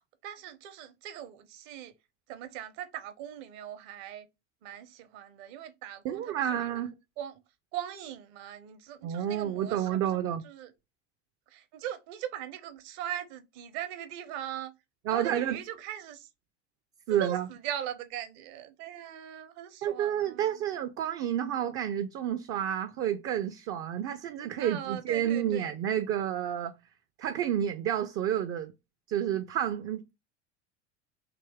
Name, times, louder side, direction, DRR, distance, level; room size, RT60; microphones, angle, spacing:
voice 1, 0.2-1.9 2.3-4.3 4.6-6.7 7.2-7.4 7.7-10.7 11.5-14.7 15.1-16.3 17.1-20.6 24.6-25.7, right 11 dB, 55° right, 0.8 m, -40 dB
voice 2, 6.0-6.9 9.0-10.4 15.1-15.6 17.1-17.5 19.8-26.7 27.2-28.7 29.1-30.1, right 10 dB, 40° right, 0.5 m, -30 dB
3.4 x 2.7 x 3.4 m
figure-of-eight pair, 75°, 36 cm